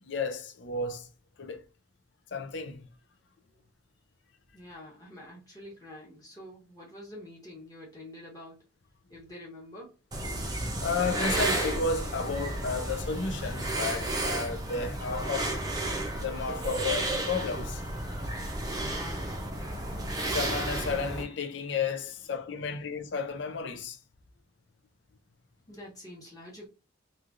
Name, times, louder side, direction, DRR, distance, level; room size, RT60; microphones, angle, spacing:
voice 1, 0.0-1.1 1.4-1.6 2.3-2.9 10.8-15.6 16.2-17.8 20.3-24.0, left 4 dB, 65° left, 0.5 m, -32 dB
voice 2, 4.5-8.6 9.1-9.9 18.6-19.3 25.7-26.7, left 1 dB, 20° left, 1.0 m, -47 dB
sound 1, 10.1-21.2, right 1 dB, 20° right, 0.6 m, -32 dB
3.1 x 2.4 x 2.5 m
head